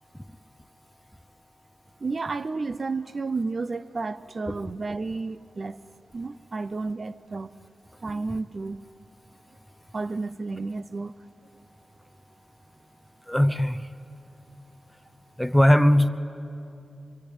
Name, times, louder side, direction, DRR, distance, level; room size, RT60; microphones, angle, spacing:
voice 1, 2.0-5.8 6.1-7.5 8.0-8.8 9.9-11.1, right 3 dB, 45° right, 0.5 m, -31 dB
voice 2, 13.3-13.9 15.4-16.1, equal, ahead, 0.8 m, -19 dB
24.0 x 23.0 x 8.8 m
wide cardioid pair, 115°, 0 cm